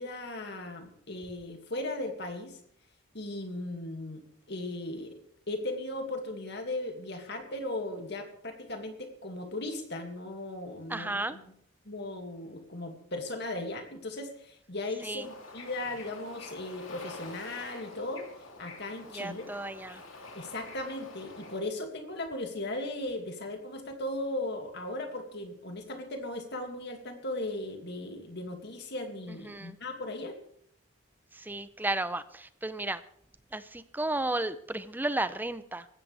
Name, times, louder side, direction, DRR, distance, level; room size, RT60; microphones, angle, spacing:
voice 1, 0.0-2.6 3.1-5.2 5.5-11.4 11.8-18.3 18.6-19.5 20.3-30.4, left 2 dB, 55° left, 4 dB, 2.3 m, -37 dB
voice 2, 10.9-11.4 15.0-15.2 19.1-20.0 29.4-29.8 31.3-33.0 33.5-35.9, right 2 dB, 10° right, 13 dB, 0.6 m, -33 dB
Bird / Ocean, 15.2-21.6, left 3 dB, 75° left, 3.1 m, -47 dB
18.5 x 15.5 x 3.4 m, 0.67 s
head